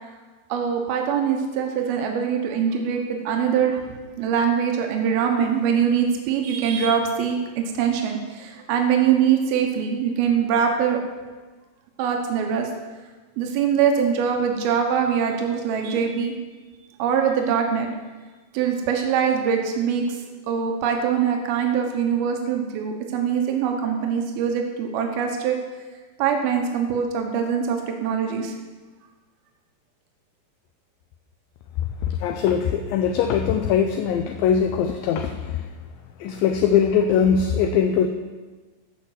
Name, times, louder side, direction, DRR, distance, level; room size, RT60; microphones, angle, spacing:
voice 1, 0.5-3.9 4.2-7.4 7.8-11.0 12.0-12.7 13.4-16.3 17.0-17.9 18.5-20.2 20.5-25.6 26.2-28.5, right 7 dB, 80° right, 3 dB, 3.0 m, -23 dB
voice 2, 32.2-35.3 36.2-38.1, left 7 dB, 80° left, 6 dB, 2.3 m, -21 dB
14.5 x 5.9 x 7.9 m, 1.3 s
omnidirectional pair, 4.3 m